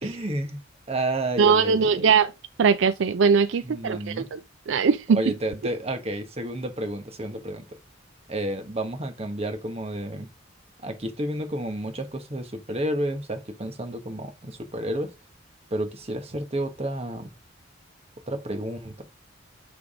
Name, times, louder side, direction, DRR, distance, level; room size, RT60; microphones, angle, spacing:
voice 1, 0.0-0.6 0.9-2.1 3.6-4.2 5.1-7.6 8.3-10.3 10.8-15.1 15.7-17.3 18.3-19.0, right 1 dB, 30° right, 1.2 m, -31 dB
voice 2, 1.4-2.3 2.6-4.0 4.3-4.4 4.7-5.0, right 6 dB, 65° right, 0.4 m, -20 dB
7.7 x 3.5 x 4.9 m
head